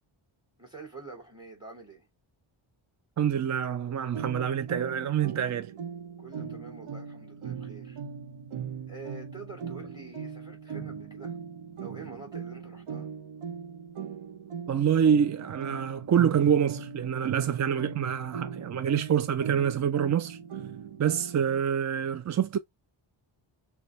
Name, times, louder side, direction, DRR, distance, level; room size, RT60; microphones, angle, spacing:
voice 1, 0.6-2.1 6.2-8.0 8.9-11.4 11.8-13.1, right 4 dB, 10° right, 2.9 m, -46 dB
voice 2, 3.2-5.7 14.7-20.4 21.0-22.6, right 8 dB, 40° right, 0.4 m, -26 dB
sound 1, 4.1-21.6, right 7 dB, 75° right, 1.0 m, -39 dB
6.6 x 2.4 x 3.1 m
wide cardioid pair, 165°, 49 cm